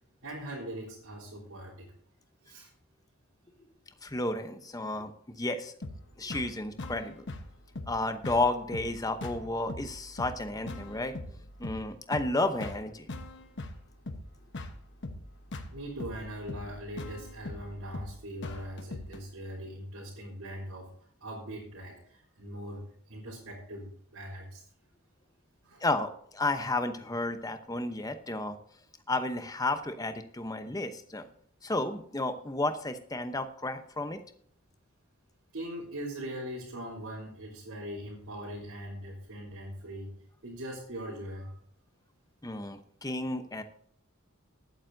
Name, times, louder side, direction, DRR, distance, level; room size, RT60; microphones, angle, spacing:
voice 1, 0.2-1.9 2.4-2.7 6.2-6.3 15.7-20.9 21.2-24.6 25.6-25.8 35.5-40.1 40.4-41.5, equal, 85° right, -10 dB, 3.6 m, -41 dB
voice 2, 4.0-5.7 6.2-7.2 7.9-11.1 11.6-13.1 25.8-28.6 29.1-31.3 31.6-34.2 42.4-43.6, left 2 dB, 15° left, 9 dB, 0.8 m, -32 dB
sound 1, 5.8-19.2, left 2 dB, 55° left, 1.1 m, -42 dB
20.5 x 9.0 x 2.7 m, 0.65 s
head